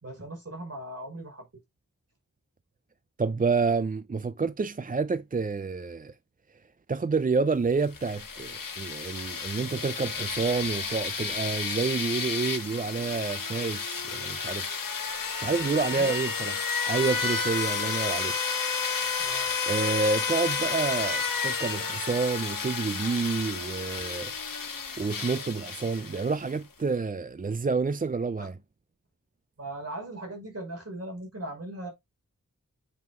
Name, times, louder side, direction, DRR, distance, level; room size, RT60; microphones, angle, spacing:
voice 1, 0.0-1.5 15.7-16.1 19.2-19.6 28.4-28.5 29.6-31.9, right 1 dB, 45° right, 5.2 m, -39 dB
voice 2, 3.2-6.2 6.9-14.7 15.3-16.6 16.8-18.4 18.9-19.2 19.6-24.3 25.0-28.6, right 4 dB, 25° right, 0.4 m, -29 dB
sound 1, 7.8-26.5, left 5 dB, 85° left, 1.2 m, -31 dB
9.0 x 5.9 x 2.4 m
wide cardioid pair, 80°, 33 cm